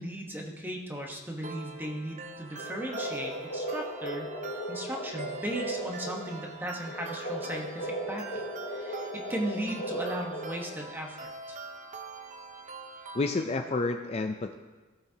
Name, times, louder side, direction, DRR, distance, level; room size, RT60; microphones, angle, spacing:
voice 1, 0.0-4.3 4.7-11.6, right 1 dB, 10° right, 1 dB, 1.1 m, -37 dB
sound 1, 1.4-13.4, right 4 dB, 35° right, 0.7 m, -44 dB
sound 2, 2.5-10.9, right 1 dB, 55° left, 1.9 m, -37 dB
voice 2, 13.1-14.5, left 3 dB, 30° left, 5 dB, 0.4 m, -30 dB
17.0 x 7.2 x 2.8 m, 1.3 s
head